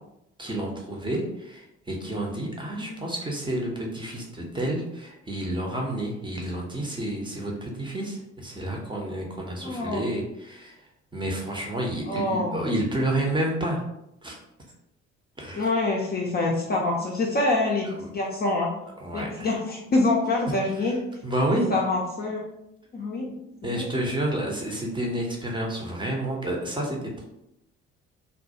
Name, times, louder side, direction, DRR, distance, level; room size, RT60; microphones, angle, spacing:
voice 1, 0.4-13.8 14.2-14.4 15.4-15.7 17.8-18.1 19.0-19.5 20.8-21.0 21.2-21.7 23.6-27.2, right 1 dB, 15° right, -1 dB, 0.6 m, -30 dB
voice 2, 9.6-10.0 12.1-12.7 15.5-18.7 19.1-21.0 21.7-22.4 22.9-23.3 23.6-23.9, left 2 dB, 30° left, -2 dB, 0.5 m, -26 dB
2.2 x 2.1 x 2.7 m, 0.83 s
figure-of-eight pair, 50°, 34 cm